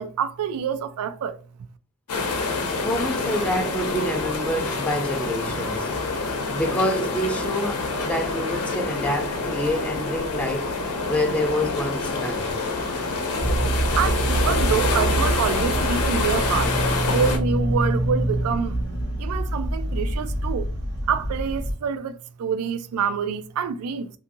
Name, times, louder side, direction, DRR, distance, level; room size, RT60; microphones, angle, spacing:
voice 1, 0.0-1.4 14.0-18.8 19.2-20.7 21.1-24.1, right 7 dB, 75° right, 0.3 m, -27 dB
sound 1, 2.1-17.4, left 3 dB, 85° left, 0.7 m, -27 dB
voice 2, 2.8-5.9 6.5-10.7 11.1-12.6, left 1 dB, 5° left, 0.5 m, -27 dB
sound 2, 13.4-21.7, right 1 dB, 55° right, 1.2 m, -25 dB
2.6 x 2.6 x 2.6 m
head